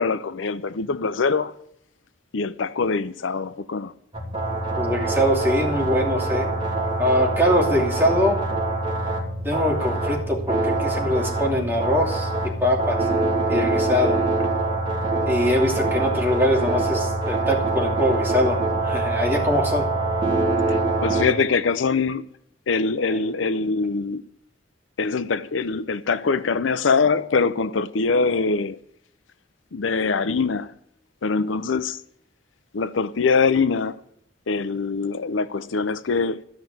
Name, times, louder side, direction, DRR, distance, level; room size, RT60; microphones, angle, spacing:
voice 1, 0.0-1.5 2.3-3.9 20.7-22.3 22.7-24.2 25.0-28.8 29.7-30.7 31.2-32.0 32.7-34.0 34.5-36.4, left 4 dB, 90° left, 0.6 m, -23 dB
sound 1, 4.1-21.2, right 2 dB, 30° right, 3.3 m, -24 dB
voice 2, 4.8-6.5 7.0-8.4 9.4-12.3 12.6-13.0 13.5-14.2 15.3-19.9, left 1 dB, 10° right, 2.7 m, -23 dB
13.5 x 5.9 x 9.3 m
head